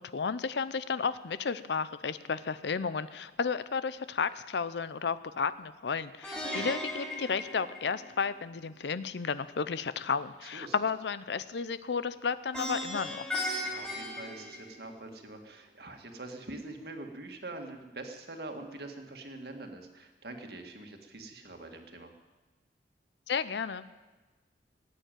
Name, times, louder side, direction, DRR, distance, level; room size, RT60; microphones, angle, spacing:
voice 1, 0.0-13.2 23.3-23.9, left 5 dB, 75° left, 14 dB, 0.5 m, -33 dB
Plucked string instrument, 6.2-8.4 12.5-15.1, left 1 dB, 5° left, 3.1 m, -37 dB
voice 2, 10.4-10.7 13.5-22.1, right 2 dB, 60° right, 4 dB, 1.9 m, -44 dB
17.0 x 9.1 x 9.2 m, 1.2 s
head